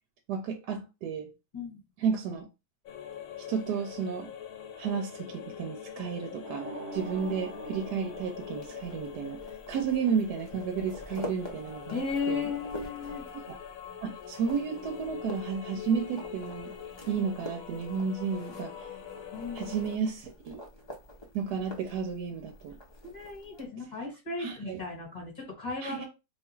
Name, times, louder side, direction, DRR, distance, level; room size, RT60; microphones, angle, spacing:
voice 1, 0.3-1.3 2.0-2.5 3.5-4.3 4.8-9.4 9.7-12.5 13.5-13.6 14.0-16.7 17.1-18.9 19.5-20.6 21.3-22.8 24.4-24.8 25.8-26.0, right 6 dB, 90° right, 1.2 m, -32 dB
sound 1, 2.9-20.0, left 8 dB, 65° left, 1.0 m, -44 dB
sound 2, 6.4-9.4, right 3 dB, 65° right, 1.2 m, -43 dB
sound 3, 6.9-23.7, left 1 dB, 45° left, 0.3 m, -47 dB
voice 2, 11.9-13.2 19.3-19.8 23.0-26.0, left 4 dB, 30° left, 1.3 m, -35 dB
2.8 x 2.4 x 4.2 m
omnidirectional pair, 1.7 m